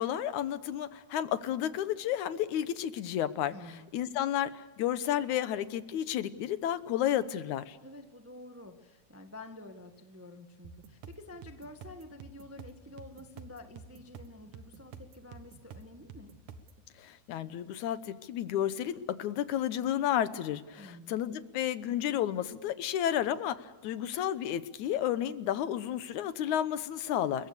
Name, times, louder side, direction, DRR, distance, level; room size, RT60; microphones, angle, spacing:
voice 1, 0.0-3.5 3.9-7.8 17.0-27.5, left 11 dB, 80° left, 13 dB, 2.4 m, -32 dB
voice 2, 3.5-3.9 7.8-16.3 20.8-21.2, left 1 dB, 10° right, 5 dB, 0.7 m, -49 dB
sound 1, 10.6-16.8, right 5 dB, 75° right, 2.8 m, -50 dB
29.5 x 22.5 x 6.9 m, 1.2 s
omnidirectional pair, 3.4 m